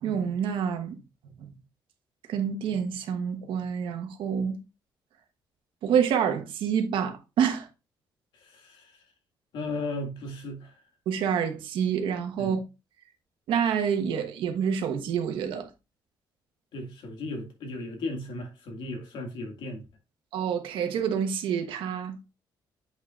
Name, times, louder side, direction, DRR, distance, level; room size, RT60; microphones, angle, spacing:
voice 1, 0.0-1.0 1.4-1.5 2.3-4.6 5.8-7.7 11.1-12.6 13.5-15.7 20.3-22.1, right 7 dB, 85° right, 1.2 m, -27 dB
voice 2, 8.4-8.9 9.5-10.7 12.4-12.6 16.7-19.8, left 2 dB, 70° left, 2.0 m, -36 dB
8.1 x 5.5 x 2.4 m
cardioid pair, 180°, 8 cm